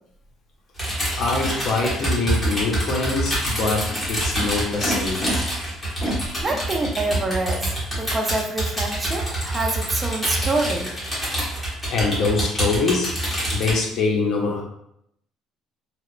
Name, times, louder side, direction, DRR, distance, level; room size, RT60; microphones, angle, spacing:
sound 1, 0.8-13.7, right 1 dB, 15° left, 1.3 m, -26 dB
voice 1, 1.2-5.3 11.9-13.1 13.5-14.6, left 3 dB, 60° left, 0 dB, 0.6 m, -24 dB
Animal, 1.4-1.5 2.3-2.8 3.6-5.3 6.0-7.2, right 1 dB, 40° left, 1.3 m, -32 dB
voice 2, 6.1-10.9, right 2 dB, 30° right, 2 dB, 0.4 m, -26 dB
2.8 x 2.0 x 2.4 m, 0.75 s
cardioid pair, 95°, 0 cm